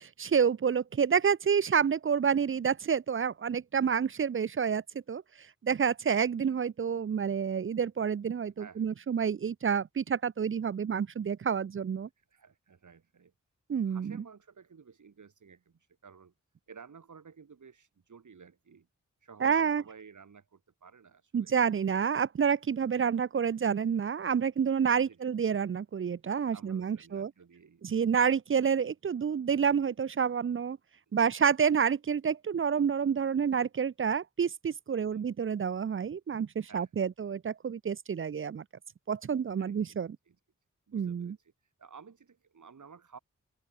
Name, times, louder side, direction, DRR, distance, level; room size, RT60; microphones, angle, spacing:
voice 1, 0.2-4.8 5.1-5.2 5.6-12.1 13.7-14.2 19.4-19.8 21.3-27.3 27.8-30.8 31.1-38.6 39.1-40.1 40.9-41.4, right 7 dB, 40° right, 0.4 m, -28 dB
voice 2, 8.6-8.9 12.2-13.3 13.9-16.3 16.7-18.9 19.2-21.5 22.9-23.2 25.0-25.3 26.5-28.0 31.1-31.5 34.9-35.3 36.6-37.1 39.6-40.4 40.9-43.2, right 6 dB, 70° right, 2.0 m, -54 dB
open air
wide cardioid pair, 65°, 32 cm